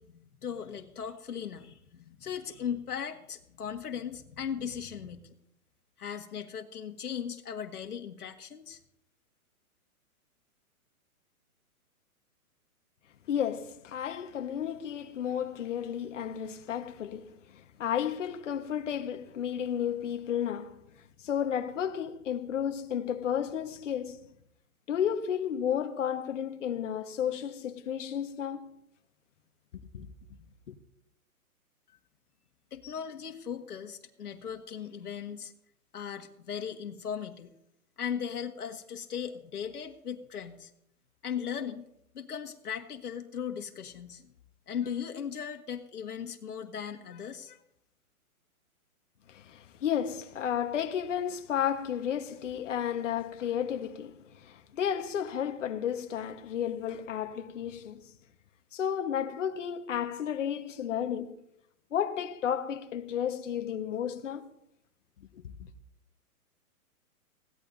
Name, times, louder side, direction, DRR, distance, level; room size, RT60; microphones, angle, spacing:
voice 1, 0.0-5.4 6.0-8.8 32.7-35.5 35.9-37.5 38.0-40.7 41.2-41.8 42.1-44.3 44.7-47.6, left 8 dB, 90° left, 1.9 m, -38 dB
voice 2, 13.3-20.8 21.2-24.2 24.9-28.8 29.9-30.1 30.7-30.8 49.3-58.0 58.7-61.4 61.9-64.4 65.3-65.7, left 9 dB, 55° left, 1.4 m, -32 dB
21.0 x 16.5 x 2.7 m
hypercardioid pair, 165°, 44 cm